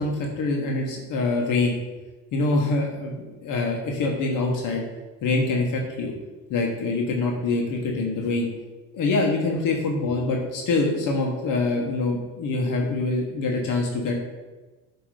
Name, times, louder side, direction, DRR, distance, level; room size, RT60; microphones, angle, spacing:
voice 1, 0.0-1.7 2.3-4.8 5.2-6.1 6.5-8.5 8.9-14.1, left 3 dB, 55° left, 0 dB, 1.2 m, -25 dB
7.2 x 3.0 x 4.8 m, 1.2 s
supercardioid pair, 80°, 38 cm